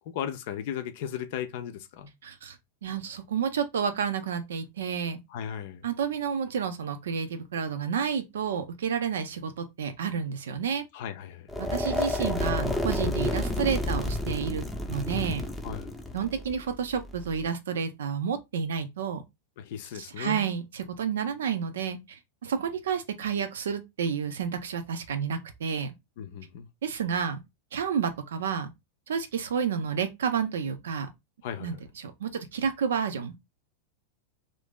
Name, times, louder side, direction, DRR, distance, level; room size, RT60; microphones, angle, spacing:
voice 1, 0.1-2.1 5.3-5.8 10.9-11.5 15.6-15.9 19.6-20.5 26.2-26.7 31.4-31.8, left 9 dB, 50° left, 0.5 m, -36 dB
voice 2, 2.2-2.6 2.8-5.2 5.8-10.8 11.6-15.4 16.1-19.2 19.9-25.9 26.8-27.4 27.7-28.7 29.1-31.1 31.6-33.3, right 7 dB, 65° right, 0.5 m, -30 dB
sound 1, 11.5-17.5, left 1 dB, ahead, 0.7 m, -30 dB
2.8 x 2.6 x 3.5 m
figure-of-eight pair, 90°, 0 cm